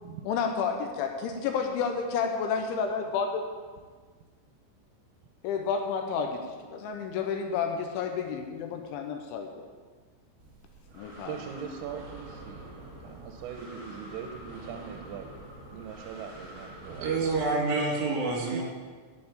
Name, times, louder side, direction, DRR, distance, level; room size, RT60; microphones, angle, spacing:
voice 1, 0.3-3.4 5.4-9.7 10.9-11.3, left 6 dB, 75° left, 4 dB, 3.1 m, -30 dB
Breathing, 10.4-17.5, right 1 dB, 40° right, 3.0 m, -46 dB
voice 2, 11.3-15.4 15.7-17.4 18.5-18.6, right 8 dB, 90° right, 4 dB, 3.5 m, -41 dB
voice 3, 17.0-18.6, right 3 dB, 60° right, -2 dB, 4.7 m, -27 dB
10.0 x 8.6 x 8.1 m, 1.5 s
omnidirectional pair, 5.8 m